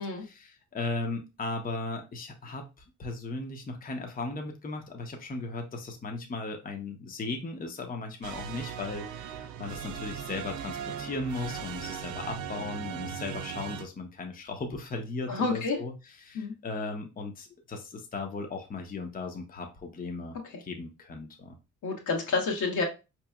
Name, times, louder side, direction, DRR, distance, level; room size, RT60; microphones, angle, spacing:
voice 1, 0.0-21.5, left 3 dB, 30° left, 3 dB, 0.7 m, -37 dB
sound 1, 8.2-13.8, right 8 dB, 75° right, 0.6 m, -38 dB
voice 2, 15.3-15.8 16.3-16.6 21.8-22.9, left 4 dB, 80° left, 1 dB, 1.1 m, -29 dB
4.6 x 3.0 x 2.3 m, 0.28 s
cardioid pair, 90°, 30 cm